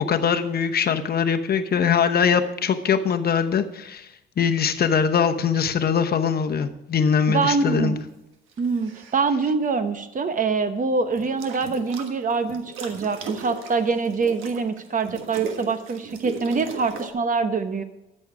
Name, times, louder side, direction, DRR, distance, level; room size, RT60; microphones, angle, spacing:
voice 1, 0.0-4.1 4.4-8.0, left 7 dB, 50° left, 7 dB, 0.9 m, -22 dB
voice 2, 7.3-8.0 8.6-17.8, right 4 dB, 40° right, 10 dB, 1.0 m, -24 dB
sound 1, 8.5-9.2 11.1-12.1 12.5-17.1, right 5 dB, 90° right, 1.4 m, -37 dB
12.5 x 6.5 x 4.9 m, 0.92 s
cardioid pair, 90°, 20 cm